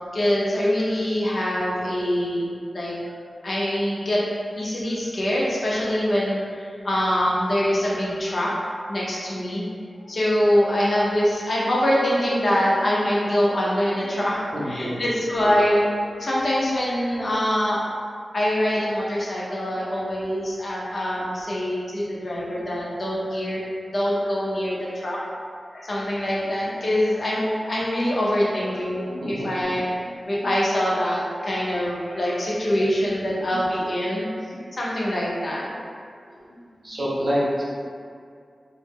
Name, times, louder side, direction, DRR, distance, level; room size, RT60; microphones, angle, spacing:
voice 1, 0.1-2.9 3.4-4.2 4.5-8.5 8.9-9.6 10.1-15.9 16.2-17.9 18.3-25.2 25.7-35.7 36.9-37.3, equal, 60° left, -6 dB, 0.6 m, -24 dB
voice 2, 14.5-15.0 28.7-28.8 29.2-29.5 36.3-36.5 36.8-37.6, equal, 65° right, -7 dB, 0.7 m, -27 dB
2.1 x 2.0 x 3.4 m, 2.2 s
cardioid pair, 45°, 0 cm